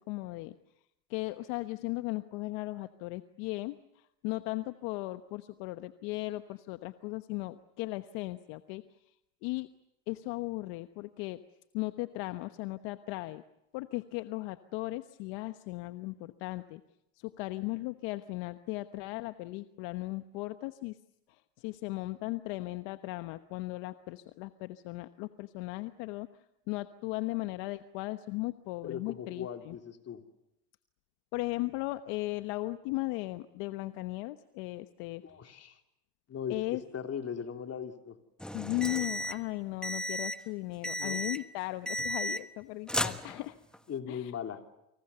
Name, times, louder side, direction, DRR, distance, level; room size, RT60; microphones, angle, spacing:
voice 1, 0.1-0.5 1.1-3.7 4.2-8.8 9.4-9.7 10.1-11.4 11.7-13.4 13.7-16.8 17.2-21.0 21.3-26.3 26.7-29.8 31.3-35.2 36.5-36.8 38.5-43.6 44.1-44.3, left 20 dB, 55° left, 10 dB, 1.2 m, -37 dB
voice 2, 28.8-30.2 35.2-35.8 36.3-36.6 36.9-38.2 41.0-41.2 43.9-44.6, left 8 dB, 30° left, 5 dB, 3.2 m, -39 dB
sound 1, 38.4-39.4 39.8-40.4 40.8-41.5 41.9-42.6 42.9-43.8, equal, ahead, 1.2 m, -34 dB
29.5 x 27.0 x 6.9 m, 0.85 s
supercardioid pair, 120°, 49 cm